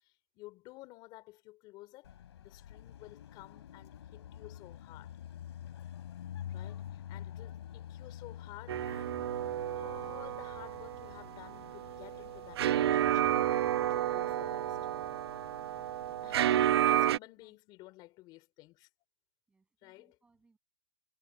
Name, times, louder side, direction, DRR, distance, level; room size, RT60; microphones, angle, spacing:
voice 1, 0.0-2.1 2.4-5.1 6.5-14.8 16.2-18.9 19.8-20.2, left 19 dB, 30° left, 4.1 m, -53 dB
Car passing by, 2.0-17.0, left 10 dB, 70° left, 3.6 m, -48 dB
sound 1, 8.7-17.2, right 12 dB, 65° right, 1.2 m, -31 dB
voice 2, 16.9-17.6 17.8-17.9 19.5-20.6, right 3 dB, 5° right, 7.8 m, -71 dB
hypercardioid pair, 150°, 14 cm